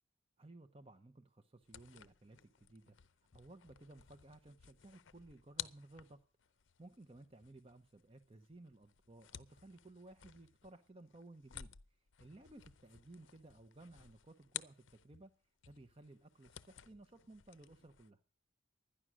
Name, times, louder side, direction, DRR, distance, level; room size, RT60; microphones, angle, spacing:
voice 1, 0.4-3.0 3.3-6.3 6.8-11.7 12.2-15.3 15.7-18.2, right 2 dB, 25° right, 8 dB, 0.7 m, -58 dB
sound 1, 1.6-15.3 15.6-18.1, left 12 dB, 65° left, 0.6 m, -54 dB
12.5 x 10.0 x 6.2 m, 0.39 s
head